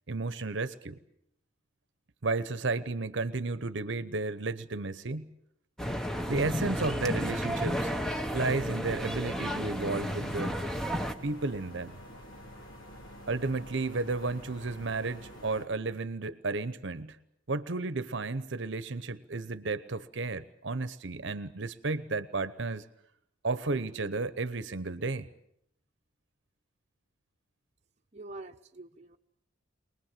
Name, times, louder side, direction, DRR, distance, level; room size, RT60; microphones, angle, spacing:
voice 1, 0.1-1.0 2.2-5.3 6.3-7.9 8.3-10.6 11.2-12.0 13.3-17.2 17.5-22.9 23.4-25.3, right 3 dB, 65° right, 14 dB, 0.9 m, -33 dB
sound 1, 5.8-11.1, equal, 5° left, 0.9 m, -32 dB
sound 2, 9.7-15.7, equal, 90° left, 4.2 m, -48 dB
voice 2, 28.1-29.2, right 2 dB, 35° right, 3 dB, 0.9 m, -45 dB
23.5 x 20.0 x 7.5 m, 0.73 s
head